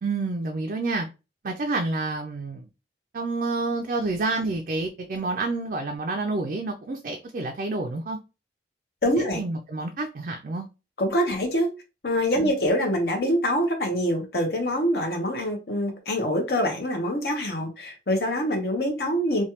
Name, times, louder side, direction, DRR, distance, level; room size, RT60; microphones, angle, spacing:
voice 1, 0.0-1.1 1.4-2.7 3.1-8.2 9.1-10.7 12.4-12.5, right 3 dB, 50° right, 0.4 m, -29 dB
voice 2, 9.0-9.4 11.0-11.7 12.0-19.4, equal, 60° left, 0.8 m, -25 dB
3.1 x 2.2 x 2.8 m
head